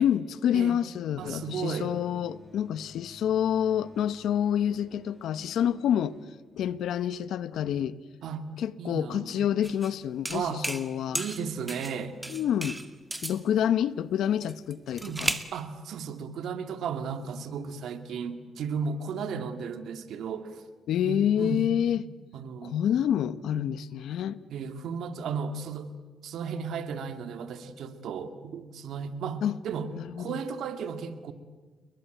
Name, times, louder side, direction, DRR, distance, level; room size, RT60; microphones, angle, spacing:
voice 1, 0.0-6.2 6.5-8.0 8.6-11.2 12.3-12.8 13.2-15.3 20.9-22.0 22.6-24.4 29.4-29.5 29.9-30.4, left 9 dB, 80° left, 1.0 m, -28 dB
sound 1, 1.2-7.2, left 2 dB, 20° left, 6.9 m, -52 dB
voice 2, 1.2-1.9 8.2-8.5 8.8-9.5 10.3-10.7 11.1-12.1 15.0-20.6 21.0-21.7 22.3-22.8 24.5-25.9 26.2-29.9 30.2-31.3, right 6 dB, 75° right, 2.1 m, -35 dB
sound 2, 9.6-9.9 10.2-10.9 11.1-12.0 12.2-13.4 14.4-15.5, right 1 dB, 10° right, 2.0 m, -34 dB
29.5 x 21.5 x 9.1 m
cardioid pair, 75°, 0 cm